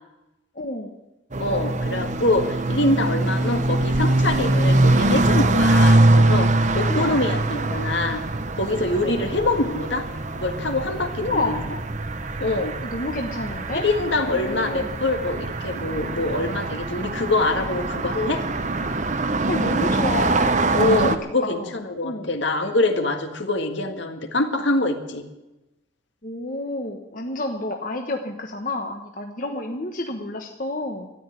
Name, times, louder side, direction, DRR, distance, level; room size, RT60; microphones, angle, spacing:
voice 1, 0.5-1.0 6.9-7.3 7.6-7.8 9.0-9.2 11.2-11.7 12.8-13.8 14.3-14.9 19.5-20.6 21.0-21.7 22.0-22.3 26.2-31.1, left 2 dB, 40° left, 3 dB, 1.2 m, -29 dB
sound 1, 1.3-21.2, right 2 dB, 35° right, 0.8 m, -23 dB
voice 2, 1.4-8.2 8.6-10.1 10.3-11.6 12.4-12.8 13.7-18.4 20.7-25.2, left 2 dB, 65° left, 5 dB, 1.9 m, -24 dB
13.5 x 10.5 x 9.6 m, 0.99 s
head